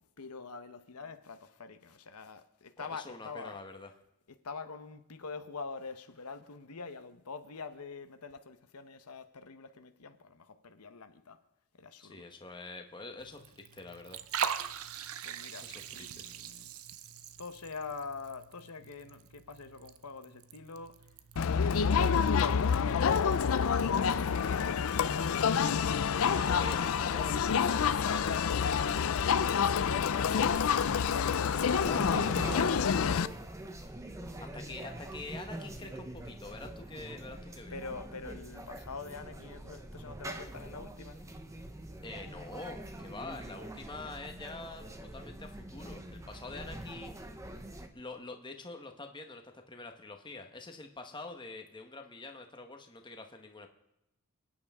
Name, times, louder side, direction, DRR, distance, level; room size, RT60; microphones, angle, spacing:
voice 1, 0.2-3.6 4.4-11.4 11.8-12.2 15.2-16.7 17.4-21.0 21.6-26.0 29.7-31.9 34.1-34.9 37.7-41.2, left 4 dB, 85° left, 1.0 m, -45 dB
voice 2, 2.8-3.9 12.0-14.2 15.6-16.3 26.2-29.1 31.7-33.4 34.4-37.8 42.0-47.3 47.9-53.7, left 3 dB, 20° left, 1.1 m, -45 dB
Liquid, 13.2-24.6, right 7 dB, 70° right, 0.7 m, -43 dB
Crowd, 21.4-33.3, left 6 dB, 65° left, 0.4 m, -28 dB
sound 1, 30.6-47.9, right 1 dB, 15° right, 0.9 m, -44 dB
28.5 x 9.6 x 3.6 m
head